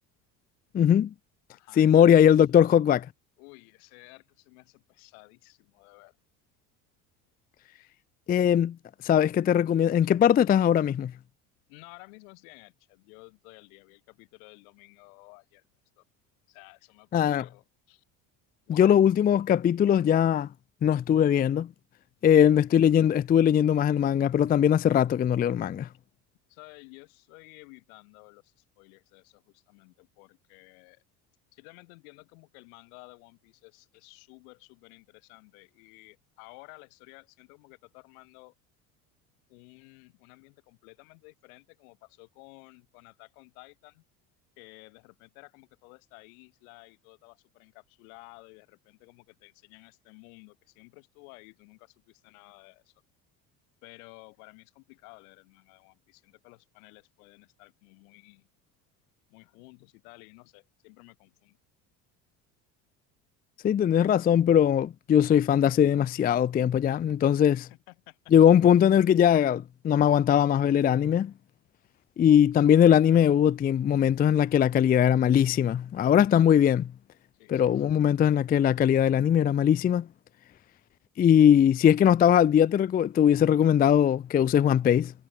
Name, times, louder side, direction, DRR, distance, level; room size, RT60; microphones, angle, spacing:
voice 1, 0.7-1.1 1.8-3.1 8.3-8.8 9.0-11.1 17.1-17.4 18.7-20.5 20.8-21.7 22.2-25.9 63.6-67.6 68.3-71.3 72.2-76.9 77.5-80.1 81.2-85.1, left 9 dB, 20° left, 0.4 m, -21 dB
voice 2, 1.5-2.1 3.4-6.2 7.8-8.0 11.7-15.6 16.0-16.1 16.5-18.0 18.7-18.9 22.4-22.7 26.5-31.0 31.5-38.5 39.5-44.0 44.6-53.0 53.8-58.5 59.3-61.6 67.5-68.3 76.2-76.5 77.3-77.8, left 31 dB, 75° left, 7.8 m, -53 dB
hypercardioid pair, 80°, 43 cm